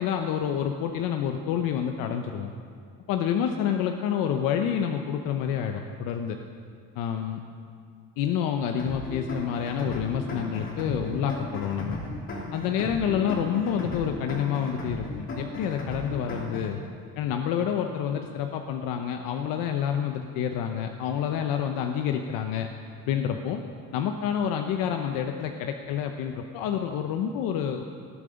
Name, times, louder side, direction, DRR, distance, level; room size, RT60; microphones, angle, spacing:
voice 1, 0.0-2.5 3.1-6.4 7.0-7.4 8.2-12.0 12.5-16.8 17.2-22.7 23.1-23.6 23.9-27.8, left 8 dB, 90° left, 5 dB, 0.9 m, -28 dB
sound 1, 8.8-16.8, left 2 dB, 40° left, 3.0 m, -36 dB
19.5 x 12.5 x 5.2 m, 2.2 s
cardioid pair, 155°, 33 cm